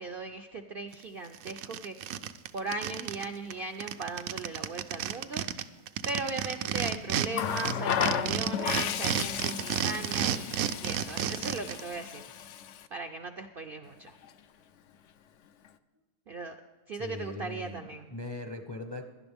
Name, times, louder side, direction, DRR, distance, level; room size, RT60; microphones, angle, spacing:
voice 1, 0.0-2.1 2.5-5.4 6.0-12.2 12.9-14.1 16.3-16.6 16.9-18.1, right 3 dB, 60° right, 6 dB, 0.6 m, -38 dB
sound 1, 0.9-1.0 1.3-3.3 3.5-3.6 3.8-7.3 7.6-11.8, right 10 dB, 75° right, 1.0 m, -31 dB
Water tap faucet, 7.3-12.9 14.1-14.3, left 9 dB, 65° left, 0.8 m, -34 dB
voice 2, 16.9-19.1, left 2 dB, 25° left, 5 dB, 0.6 m, -40 dB
17.0 x 11.0 x 3.5 m, 1.3 s
omnidirectional pair, 1.5 m